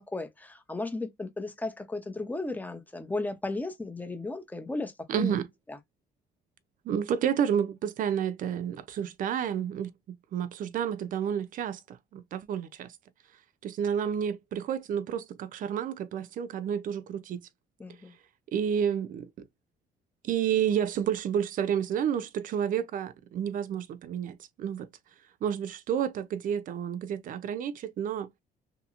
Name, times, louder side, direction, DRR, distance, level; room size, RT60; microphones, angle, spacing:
voice 1, 0.0-5.4 5.7-5.8 17.8-18.1, left 2 dB, 10° left, 0.7 m, -35 dB
voice 2, 5.1-5.5 6.9-12.9 13.6-17.4 18.5-19.3 20.2-24.9 25.4-28.3, right 8 dB, 55° right, 0.5 m, -30 dB
2.8 x 2.8 x 2.4 m
cardioid pair, 110°, 17 cm